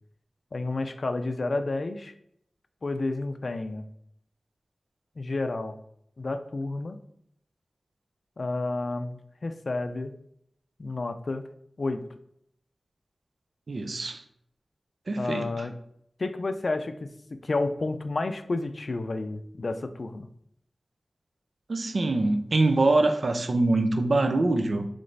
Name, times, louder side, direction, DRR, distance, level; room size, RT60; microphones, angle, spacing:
voice 1, 0.5-2.1 2.8-3.9 5.2-5.8 6.2-7.0 8.4-10.1 10.8-11.5 11.8-12.0 15.2-15.7 16.2-20.3, left 2 dB, 65° left, 9 dB, 0.4 m, -30 dB
voice 2, 13.7-14.2 15.1-15.7 21.7-24.9, right 2 dB, 75° right, 7 dB, 0.4 m, -24 dB
3.2 x 3.2 x 3.9 m, 0.73 s
wide cardioid pair, 50°, 0 cm